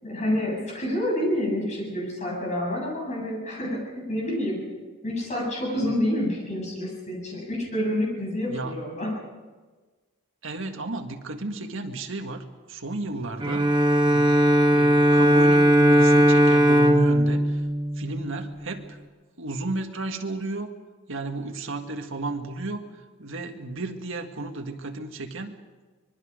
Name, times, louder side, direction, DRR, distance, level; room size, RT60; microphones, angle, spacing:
voice 1, 0.0-4.7 5.0-9.2, left 1 dB, 35° left, -2 dB, 7.7 m, -28 dB
voice 2, 10.4-13.6 14.1-14.4 14.7-17.6 18.0-19.0 19.4-20.7 21.1-22.8 23.2-25.6, right 2 dB, 65° right, 4 dB, 1.8 m, -33 dB
Bowed string instrument, 13.4-18.6, equal, 20° right, 1.2 m, -18 dB
24.5 x 22.0 x 5.2 m, 1.3 s
head